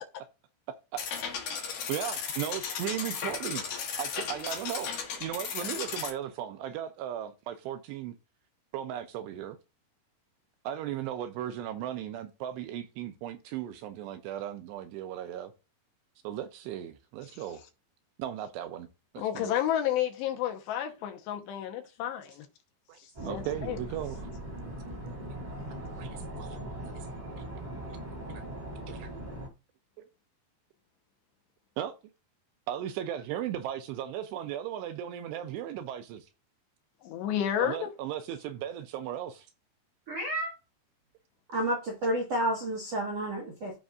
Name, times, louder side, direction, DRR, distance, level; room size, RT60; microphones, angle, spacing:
sound 1, 1.0-6.1, left 6 dB, 55° left, 3.0 m, -35 dB
voice 1, 1.4-3.7 4.0-8.1 8.7-9.6 10.6-15.5 16.2-17.7 18.2-18.9 19.1-19.5 22.9-24.3 26.0-26.6 27.0-27.1 27.4-27.5 28.9-29.1 30.0-30.1 31.8-31.9 32.7-36.3 37.6-39.5, right 11 dB, 80° right, 2.6 m, -36 dB
voice 2, 19.2-22.5 23.2-23.8 37.0-37.9, left 11 dB, 75° left, 3.1 m, -31 dB
sound 2, 23.1-29.5, right 1 dB, 25° right, 1.0 m, -40 dB
voice 3, 40.1-40.5 41.5-43.8, right 1 dB, 65° right, 1.5 m, -30 dB
15.0 x 5.2 x 2.5 m
omnidirectional pair, 5.3 m